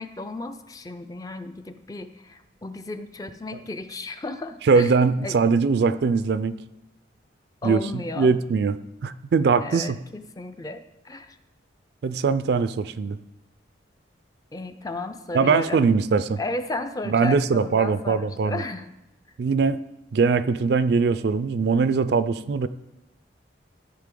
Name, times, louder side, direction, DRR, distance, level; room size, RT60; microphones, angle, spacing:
voice 1, 0.0-4.9 5.2-5.4 7.6-8.4 9.6-11.4 14.5-15.9 16.4-18.9, left 2 dB, 20° left, 9 dB, 0.4 m, -34 dB
voice 2, 4.7-6.6 7.6-8.7 9.0-10.0 12.0-13.2 15.3-16.4 17.1-18.6 19.4-19.8 20.1-22.7, right 5 dB, 55° right, 14 dB, 0.3 m, -21 dB
14.0 x 5.2 x 3.8 m, 0.93 s
head